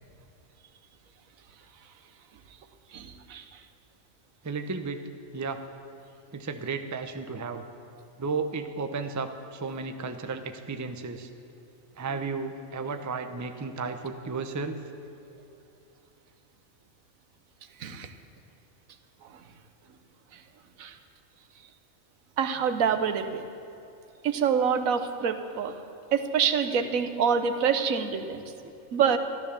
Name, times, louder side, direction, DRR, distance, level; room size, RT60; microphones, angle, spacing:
voice 1, 2.9-3.6 17.8-18.1 19.2-19.4 20.3-20.4 20.8-21.0 22.4-23.4 24.2-25.7 26.1-28.4 28.9-29.2, right 7 dB, 90° right, 8 dB, 1.3 m, -26 dB
voice 2, 4.4-5.0 5.3-5.6 6.3-7.6 8.2-11.3 12.0-14.8 28.6-28.7, right 4 dB, 20° right, 7 dB, 0.5 m, -33 dB
13.5 x 12.0 x 7.0 m, 2.7 s
omnidirectional pair, 1.4 m